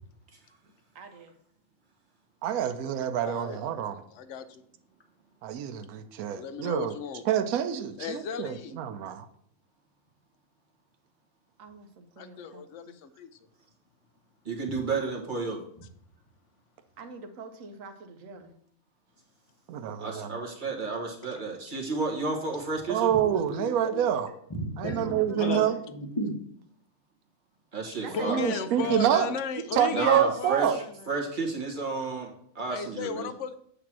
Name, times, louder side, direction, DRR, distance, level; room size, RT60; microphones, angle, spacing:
voice 1, 0.9-1.3 11.6-13.0 17.0-18.5 24.9-25.8 28.0-29.0, right 4 dB, 65° right, 6 dB, 1.2 m, -45 dB
voice 2, 2.4-4.0 5.4-6.9 7.3-9.3 19.7-20.3 22.9-24.3 24.8-25.7 28.3-29.3 29.7-30.8, right 10 dB, 85° right, 8 dB, 1.0 m, -27 dB
voice 3, 3.2-3.6 4.1-4.6 6.3-7.2 8.0-8.8 12.2-13.3 28.1-31.1 32.7-33.6, left 7 dB, 65° left, 11 dB, 0.9 m, -35 dB
voice 4, 14.4-15.6 20.0-23.1 27.7-28.4 29.9-33.3, right 3 dB, 35° right, 0 dB, 1.4 m, -32 dB
voice 5, 23.1-26.4, left 1 dB, 20° left, 2 dB, 1.0 m, -35 dB
8.2 x 2.9 x 6.0 m, 0.65 s
omnidirectional pair, 1.5 m